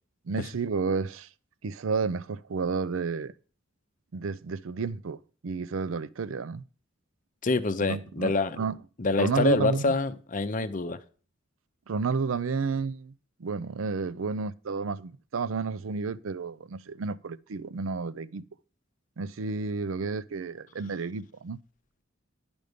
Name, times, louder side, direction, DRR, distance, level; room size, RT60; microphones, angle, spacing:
voice 1, 0.3-1.3 1.6-3.3 4.1-5.2 5.4-6.6 7.8-8.8 9.2-9.9 11.9-13.1 13.4-18.5 19.2-21.6, right 4 dB, 85° right, 0.5 m, -31 dB
voice 2, 7.4-8.6 9.0-11.0, left 3 dB, 40° left, 0.6 m, -26 dB
11.0 x 5.2 x 5.1 m
head